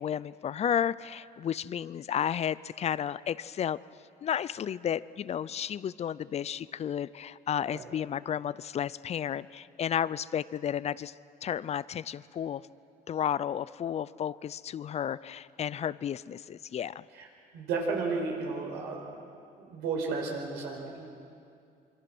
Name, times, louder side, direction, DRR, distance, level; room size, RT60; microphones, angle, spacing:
voice 1, 0.0-3.8 4.2-11.1 11.4-12.6 13.1-17.0, left 9 dB, 40° left, 19 dB, 0.5 m, -32 dB
voice 2, 17.5-19.0 19.6-21.1, right 4 dB, 90° right, 0 dB, 5.2 m, -33 dB
26.5 x 24.0 x 6.2 m, 2.4 s
cardioid pair, 110°, 17 cm